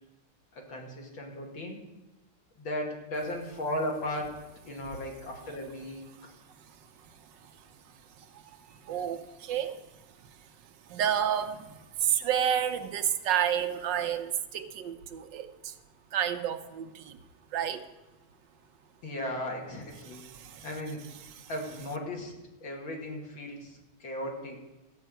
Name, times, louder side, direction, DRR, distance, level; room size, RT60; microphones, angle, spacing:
voice 1, 0.6-1.8 2.6-4.4 4.6-6.0 19.0-20.2 20.6-21.0 21.5-22.3 22.6-24.6, left 1 dB, 85° left, 0 dB, 3.0 m, -36 dB
voice 2, 6.1-15.8 16.1-17.2 17.5-17.9 20.0-20.7 21.2-21.5, right 9 dB, 70° right, 8 dB, 1.4 m, -32 dB
14.0 x 5.5 x 9.0 m, 1.0 s
omnidirectional pair, 2.1 m